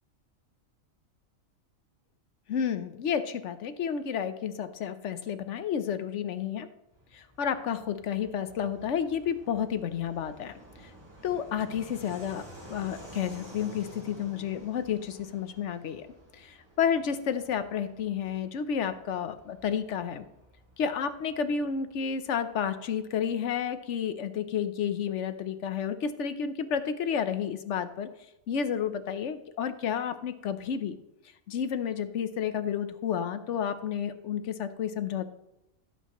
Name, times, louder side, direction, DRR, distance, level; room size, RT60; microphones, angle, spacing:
voice 1, 2.5-6.7 7.1-10.5 10.8-10.9 11.2-12.4 12.7-16.1 16.3-20.3 20.8-28.1 28.5-31.0 31.5-35.3, left 8 dB, 65° left, 11 dB, 1.0 m, -31 dB
Fixed-wing aircraft airplane, 6.9-23.1, right 1 dB, 20° right, 3.6 m, -52 dB
16.0 x 8.3 x 3.0 m, 0.89 s
omnidirectional pair, 1.4 m